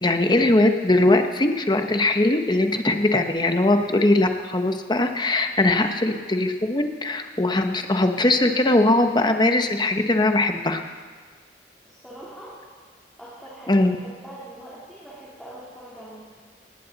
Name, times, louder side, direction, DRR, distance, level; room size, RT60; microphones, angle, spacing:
voice 1, 0.0-10.8 13.7-14.0, left 2 dB, 25° left, 6 dB, 1.0 m, -20 dB
voice 2, 11.8-12.6 13.2-16.2, right 1 dB, ahead, -9 dB, 3.2 m, -42 dB
18.5 x 16.0 x 4.1 m, 1.5 s
head